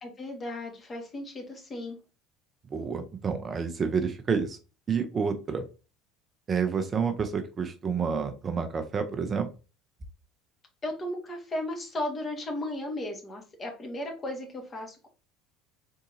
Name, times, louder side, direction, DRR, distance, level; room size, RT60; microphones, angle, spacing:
voice 1, 0.0-2.0 10.8-15.1, left 1 dB, 30° left, 2 dB, 1.6 m, -35 dB
voice 2, 2.7-4.6 4.9-5.7 6.5-9.5, right 6 dB, 35° right, 7 dB, 0.6 m, -29 dB
3.9 x 3.6 x 2.7 m, 0.33 s
hypercardioid pair, 70°, 0 cm